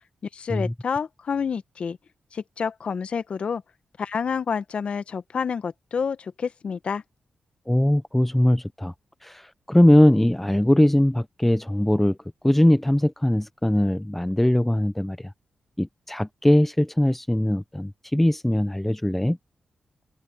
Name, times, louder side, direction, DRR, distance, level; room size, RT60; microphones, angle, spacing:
voice 1, 0.3-2.0 2.3-3.6 4.0-7.0, left 6 dB, 65° left, 1.3 m, -28 dB
voice 2, 7.7-8.9 9.2-12.2 12.4-15.3 15.8-19.4, left 1 dB, 10° left, 0.9 m, -21 dB
open air
supercardioid pair, 50°, 2 cm